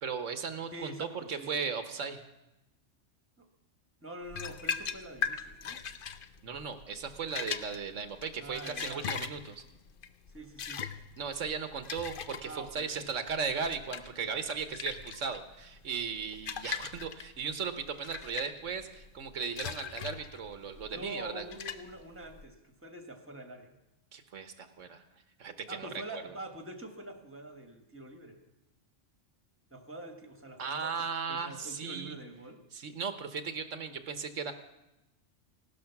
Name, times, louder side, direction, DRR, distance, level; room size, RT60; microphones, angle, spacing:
voice 1, 0.0-2.2 6.4-9.6 11.2-21.4 24.1-25.0 25.4-26.2 30.6-32.2 32.7-34.5, right 6 dB, 85° right, 8 dB, 1.4 m, -37 dB
voice 2, 0.7-1.5 3.4-3.5 4.0-5.8 8.4-9.0 10.3-10.9 12.4-13.1 20.9-23.8 25.7-28.4 29.7-32.6, right 1 dB, 10° right, 4 dB, 1.6 m, -45 dB
sound 1, 4.3-22.4, left 7 dB, 50° left, 0.8 m, -40 dB
16.5 x 12.0 x 5.9 m, 0.94 s
omnidirectional pair, 1.3 m